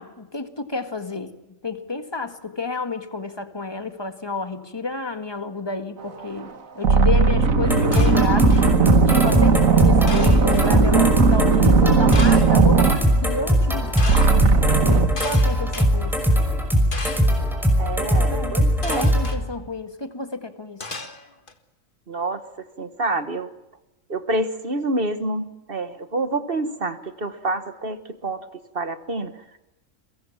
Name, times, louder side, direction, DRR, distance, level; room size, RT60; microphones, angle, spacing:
voice 1, 0.0-1.4 1.6-14.4 15.2-16.2 18.1-18.6 18.9-20.9, left 3 dB, 20° left, 8 dB, 1.8 m, -31 dB
sound 1, 6.2-6.4 6.8-13.8 14.1-15.2, right 5 dB, 85° right, 1.7 m, -18 dB
sound 2, 7.6-19.3, equal, ahead, 5.6 m, -20 dB
sound 3, 7.9-8.7 10.1-10.7 12.1-12.7 14.0-14.3 15.2-15.9 16.9-17.4 18.8-19.4 20.8-21.5, left 3 dB, 40° left, 2.0 m, -35 dB
voice 2, 17.8-19.1 22.1-22.4 22.8-23.5 24.1-28.0 28.2-28.4 28.8-29.3, right 2 dB, 45° right, 10 dB, 1.6 m, -27 dB
30.0 x 23.5 x 7.3 m, 0.96 s
omnidirectional pair, 1.4 m